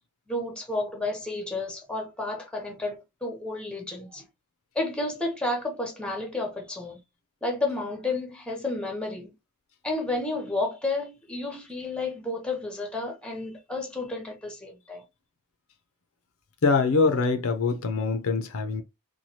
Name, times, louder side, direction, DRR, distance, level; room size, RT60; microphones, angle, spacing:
voice 1, 0.3-4.3 4.7-7.0 7.4-9.3 9.8-15.0, left 2 dB, 5° left, 0.8 m, -31 dB
voice 2, 16.6-18.8, left 4 dB, 65° left, 0.5 m, -24 dB
3.1 x 2.3 x 2.7 m
head